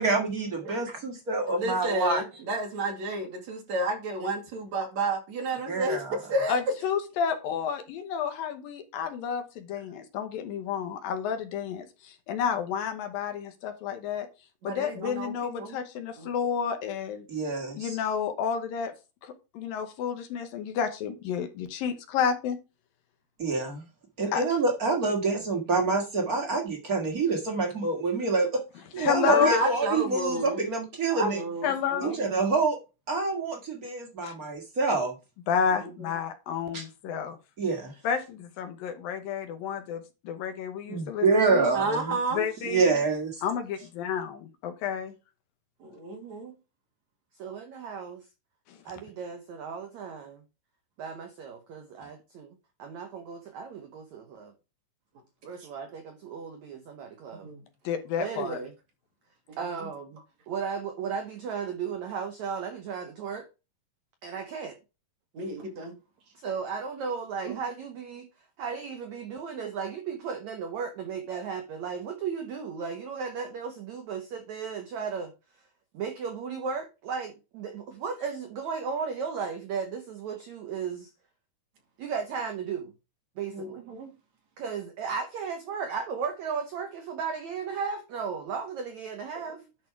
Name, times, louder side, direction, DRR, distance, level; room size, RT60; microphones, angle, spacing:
voice 1, 0.0-2.2 5.7-6.2 17.3-18.0 23.4-23.8 24.2-28.6 28.9-31.4 32.0-32.8 33.1-35.1 36.7-36.8 37.6-37.9 40.9-42.2 42.6-43.4, right 3 dB, 90° right, 0.7 m, -27 dB
voice 2, 1.5-6.6 14.6-15.3 15.6-15.8 16.2-16.3 29.2-30.6 31.1-32.4 35.8-36.1 41.7-42.4 45.8-46.5 57.4-57.6 59.5-59.9 65.3-65.9 67.4-67.6 83.5-84.1 89.5-89.6, right 2 dB, 50° right, 3.2 m, -31 dB
voice 3, 6.5-14.3 14.6-17.3 17.8-18.9 19.2-22.6 24.3-24.4 29.0-29.6 31.6-32.2 34.2-34.3 35.5-37.4 38.0-41.7 42.3-42.8 43.4-45.1 48.7-48.8 57.8-58.6, left 7 dB, 70° left, 2.5 m, -30 dB
voice 4, 47.4-48.3 48.9-50.4 51.0-54.5 55.4-57.5 58.2-58.7 59.6-60.2 60.5-63.5 64.2-64.8 66.4-68.3 68.6-75.3 75.9-81.1 82.0-82.9 83.4-83.8 84.6-89.6, right 6 dB, 75° right, 1.7 m, -35 dB
11.0 x 4.9 x 4.7 m
omnidirectional pair, 4.6 m